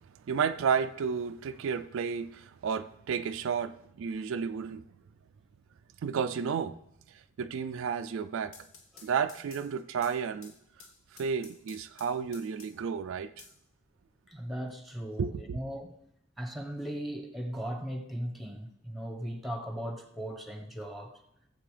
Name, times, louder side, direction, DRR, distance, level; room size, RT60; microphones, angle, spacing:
voice 1, 0.3-4.8 6.0-6.7 7.1-8.5 9.0-10.5 11.1-13.4 15.2-15.6, right 6 dB, 65° right, 0.3 m, -32 dB
sound 1, 8.3-12.9 13.4-14.4, left 5 dB, 80° left, 1.3 m, -54 dB
voice 2, 14.3-15.9 16.4-21.2, equal, ahead, 1.0 m, -38 dB
16.5 x 7.6 x 3.3 m
head